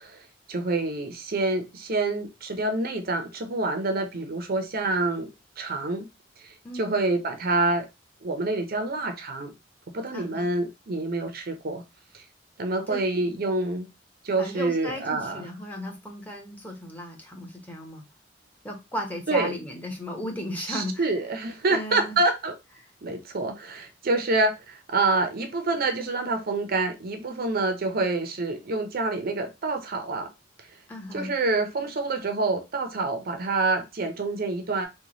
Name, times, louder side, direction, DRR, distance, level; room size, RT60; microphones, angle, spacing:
voice 1, 0.0-5.3 5.6-6.1 6.4-7.9 8.2-9.5 9.9-11.8 12.1-12.2 12.6-13.9 14.2-15.5 19.3-19.6 20.7-22.5 23.0-30.3 31.1-34.9, right 2 dB, 50° right, 0.6 m, -27 dB
voice 2, 6.6-7.0 10.1-10.5 12.9-13.3 14.4-18.0 18.6-21.1 21.7-22.2 30.9-31.3, equal, 10° left, 0.8 m, -35 dB
3.0 x 2.2 x 3.8 m
head